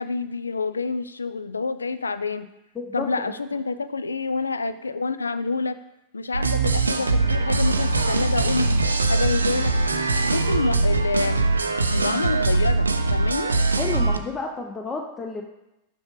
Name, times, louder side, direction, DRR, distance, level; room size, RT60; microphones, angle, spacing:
voice 1, 0.0-2.5 2.9-5.8 6.1-8.7 9.1-9.7 10.2-11.4 11.9-13.5, left 4 dB, 75° left, 13 dB, 0.3 m, -27 dB
voice 2, 2.9-3.3 13.8-15.4, left 3 dB, 20° left, 2 dB, 0.6 m, -31 dB
sound 1, 6.3-14.2, right 3 dB, 80° right, 0.4 m, -22 dB
6.3 x 6.0 x 3.1 m, 0.90 s
figure-of-eight pair, 90°, 0 cm